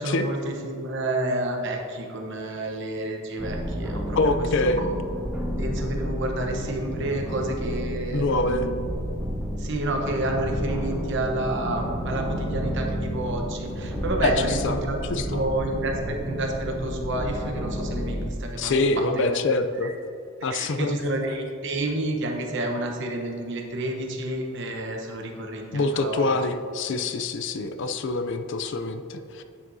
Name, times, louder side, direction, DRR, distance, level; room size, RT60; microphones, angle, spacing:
voice 1, 0.0-4.2 4.6-4.9 5.6-8.8 9.6-15.0 15.3-19.4 19.7-19.9 20.5-26.3, right 1 dB, 55° right, 2 dB, 1.0 m, -30 dB
sound 1, 3.4-18.3, equal, 5° right, 1.4 m, -31 dB
voice 2, 4.2-4.8 8.1-8.7 14.2-14.8 15.1-15.4 18.6-19.9 20.4-21.1 25.7-29.4, left 3 dB, 55° left, 9 dB, 0.4 m, -25 dB
9.7 x 7.5 x 2.7 m, 2.5 s
head